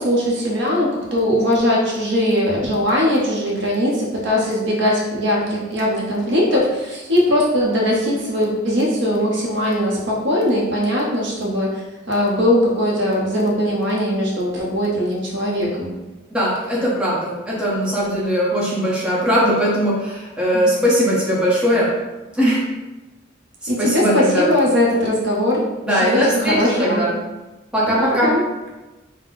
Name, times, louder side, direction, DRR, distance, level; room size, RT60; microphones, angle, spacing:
voice 1, 0.0-11.8 12.1-15.9 20.5-20.6 23.7-25.6 25.9-27.0 28.2-28.4, left 1 dB, 60° right, -3 dB, 0.8 m, -20 dB
voice 2, 16.3-21.9 22.3-22.6 23.8-24.5 25.8-27.1 27.7-28.3, equal, 5° right, -7 dB, 0.9 m, -19 dB
3.7 x 2.1 x 4.0 m, 1.1 s
head